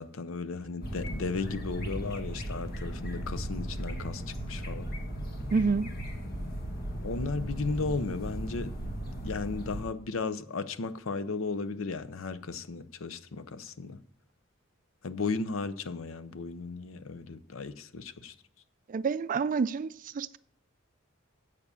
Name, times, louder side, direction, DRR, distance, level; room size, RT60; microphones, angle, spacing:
voice 1, 0.0-4.9 7.0-8.7 9.2-14.0 15.0-18.3, left 4 dB, 85° left, 0.6 m, -35 dB
sound 1, 0.8-9.8, equal, 50° left, 1.8 m, -36 dB
voice 2, 5.5-5.9 18.9-20.4, right 5 dB, 40° right, 0.3 m, -28 dB
8.2 x 7.2 x 6.9 m
head